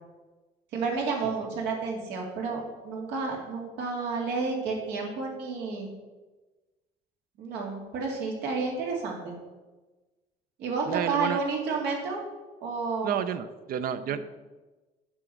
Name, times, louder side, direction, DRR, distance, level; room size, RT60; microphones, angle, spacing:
voice 1, 0.7-5.9 7.4-9.4 10.6-12.2 12.6-13.2 14.0-14.2, right 4 dB, 85° right, 0 dB, 2.4 m, -31 dB
voice 2, 10.9-11.4 13.0-14.2, right 9 dB, 60° right, 12 dB, 0.7 m, -30 dB
7.5 x 6.0 x 6.6 m, 1.2 s
cardioid pair, 110°, 17 cm